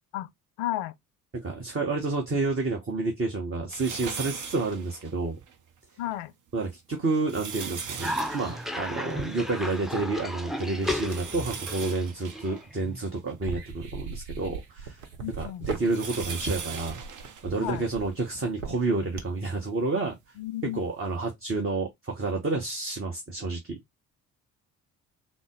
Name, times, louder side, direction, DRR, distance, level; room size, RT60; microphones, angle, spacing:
voice 1, 0.6-0.9 6.0-6.3 15.2-15.7 17.6-17.8 20.4-20.8, left 14 dB, 75° left, 0.5 m, -33 dB
voice 2, 1.3-5.4 6.5-15.0 15.3-17.0 17.4-20.2 20.6-23.8, right 3 dB, 30° right, 1.2 m, -29 dB
sound 1, 3.7-5.5 6.1-6.2 6.9-9.9 10.2-10.3 10.8-13.8 14.5-18.3 19.1-19.2 20.5-20.6, right 6 dB, 45° right, 0.8 m, -40 dB
Cough, 8.0-13.1, left 1 dB, ahead, 0.5 m, -34 dB
sound 2, 13.4-19.5, right 6 dB, 75° right, 0.9 m, -38 dB
3.9 x 2.1 x 3.6 m
hypercardioid pair, 45°, 42 cm